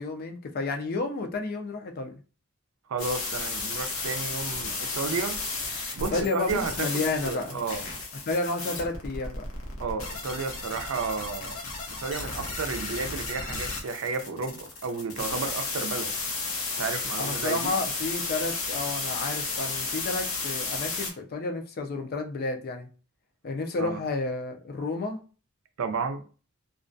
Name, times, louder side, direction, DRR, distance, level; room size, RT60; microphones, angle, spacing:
voice 1, 0.0-2.1 6.1-7.6 8.3-9.4 17.2-22.9 23.4-25.2, left 3 dB, 45° left, 0.4 m, -31 dB
voice 2, 2.9-5.4 6.0-7.8 9.8-11.6 12.0-16.1 16.8-17.7 23.8-24.0 25.8-26.2, right 4 dB, 80° right, 0.4 m, -32 dB
sound 1, 3.0-21.1, left 3 dB, 90° left, 0.7 m, -33 dB
2.4 x 2.2 x 2.5 m
head